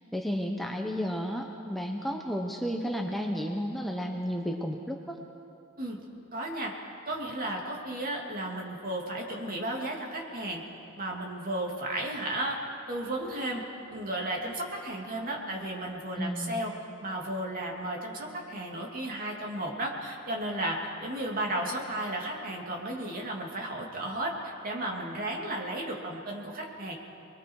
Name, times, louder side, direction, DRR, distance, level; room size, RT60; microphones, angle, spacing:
voice 1, 0.1-5.2 16.2-16.6, equal, ahead, 1 dB, 1.0 m, -32 dB
voice 2, 6.3-6.7 7.1-10.6 11.0-12.6 12.9-13.6 13.9-16.7 17.0-27.0, right 1 dB, 45° right, -1 dB, 3.0 m, -34 dB
29.5 x 21.5 x 4.9 m, 2.9 s
head